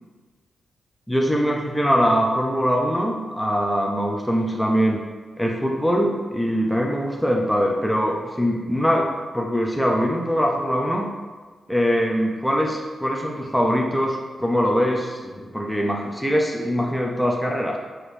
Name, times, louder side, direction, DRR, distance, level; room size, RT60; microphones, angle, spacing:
voice 1, 1.1-5.0 5.4-9.1 9.3-11.1 11.7-17.8, equal, 5° left, -1 dB, 0.5 m, -22 dB
4.7 x 2.7 x 3.2 m, 1.4 s
cardioid pair, 70°, 0 cm